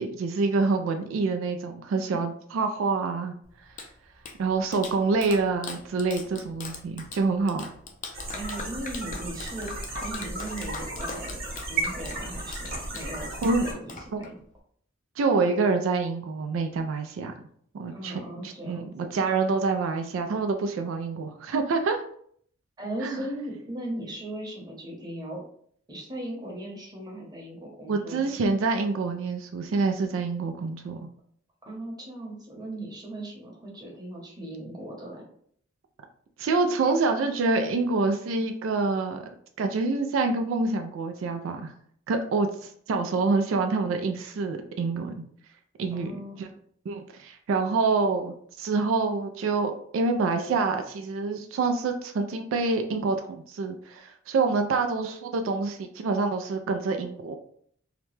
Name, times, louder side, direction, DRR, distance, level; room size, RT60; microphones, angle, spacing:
voice 1, 0.0-3.3 4.4-7.7 13.4-13.7 14.1-14.3 15.2-17.3 17.8-18.2 18.6-22.0 23.0-23.2 27.9-31.0 36.4-39.2 39.6-41.7 42.1-45.1 45.8-46.1 46.9-57.4, right 4 dB, 75° right, 6 dB, 0.3 m, -26 dB
Clapping, 3.4-14.6, left 4 dB, 40° left, 0.4 m, -42 dB
sound 1, 8.1-13.7, right 2 dB, 50° right, 0.9 m, -34 dB
voice 2, 8.3-13.3 13.6-14.4 17.9-18.9 22.8-25.4 25.9-28.3 31.6-35.3 45.9-46.4, right 1 dB, 20° right, -2 dB, 0.8 m, -38 dB
2.8 x 2.1 x 3.1 m, 0.62 s
head